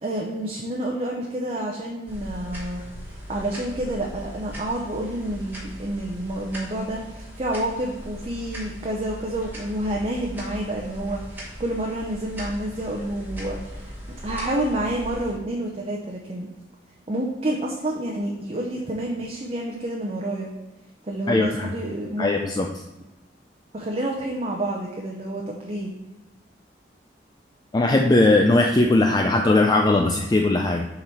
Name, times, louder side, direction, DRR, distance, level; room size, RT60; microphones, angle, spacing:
voice 1, 0.0-2.8 3.3-13.9 14.2-16.5 17.1-20.5 21.0-22.3 23.7-25.9, right 1 dB, 35° right, -1 dB, 0.7 m, -29 dB
sound 1, 2.1-15.3, equal, 10° right, 1.4 m, -39 dB
voice 2, 21.3-21.7 22.2-22.7 27.7-30.9, left 2 dB, 20° left, 2 dB, 0.3 m, -19 dB
6.9 x 3.9 x 4.5 m, 1.0 s
head